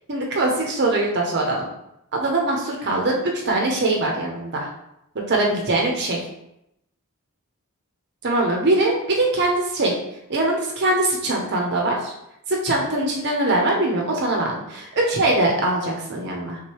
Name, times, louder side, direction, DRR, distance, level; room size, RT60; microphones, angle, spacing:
voice 1, 0.1-1.7 2.1-4.7 5.1-6.2 8.2-9.9 10.3-12.1 12.5-16.6, right 2 dB, 50° right, 0 dB, 0.7 m, -22 dB
3.6 x 3.2 x 4.5 m, 0.82 s
head